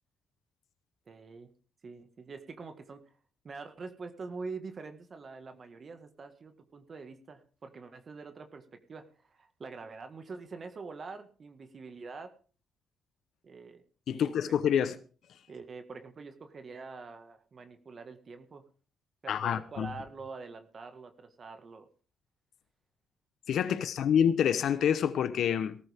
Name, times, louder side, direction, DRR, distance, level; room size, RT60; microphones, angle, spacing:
voice 1, 1.1-1.5 1.8-3.1 3.4-12.3 13.4-13.8 14.1-14.3 15.5-18.6 19.2-21.9 24.0-24.1, right 4 dB, 40° right, 1.8 m, -45 dB
voice 2, 14.1-15.0 19.3-19.9 23.5-25.8, left 8 dB, 70° left, 0.9 m, -27 dB
18.5 x 14.0 x 3.6 m
cardioid pair, 90°, 0 cm